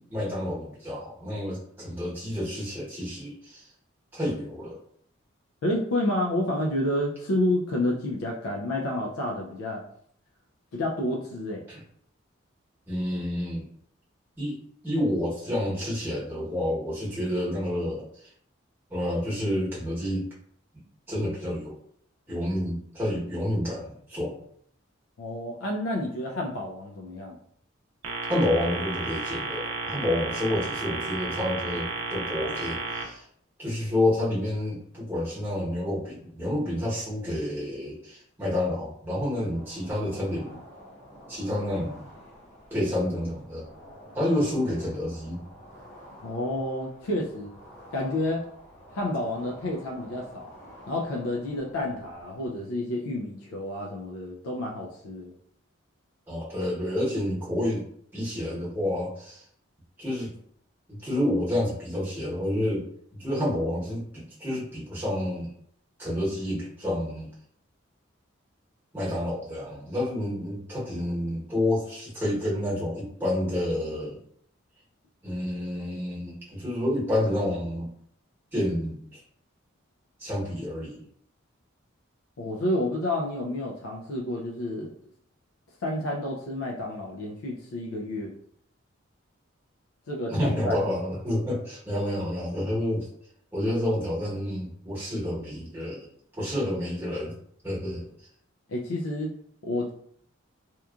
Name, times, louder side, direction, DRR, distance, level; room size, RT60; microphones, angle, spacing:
voice 1, 0.0-3.6 4.1-4.8 11.7-11.8 12.9-13.7 14.4-14.6 14.8-18.3 18.9-20.3 21.1-21.8 22.3-24.3 28.3-33.2 33.6-40.6 41.3-42.1 42.7-43.7 44.1-45.4 56.3-57.8 58.1-59.4 60.0-60.3 60.9-65.5 66.0-67.3 68.9-74.2 75.2-77.9 78.5-79.2 80.2-81.0 90.3-93.1 93.5-96.1 96.4-97.3 97.6-98.3, left 1 dB, 10° right, -8 dB, 1.0 m, -29 dB
voice 2, 5.6-9.8 10.7-11.6 25.2-27.4 46.2-47.5 47.9-48.4 48.9-50.5 50.9-55.3 82.4-84.9 85.8-88.3 90.1-90.8 98.7-99.3 99.6-99.9, left 1 dB, 85° left, 0 dB, 0.4 m, -29 dB
sound 1, 28.0-33.0, right 3 dB, 75° right, 0.5 m, -32 dB
sound 2, 39.5-52.5, equal, 30° left, 0.9 m, -49 dB
2.8 x 2.3 x 2.3 m, 0.65 s
head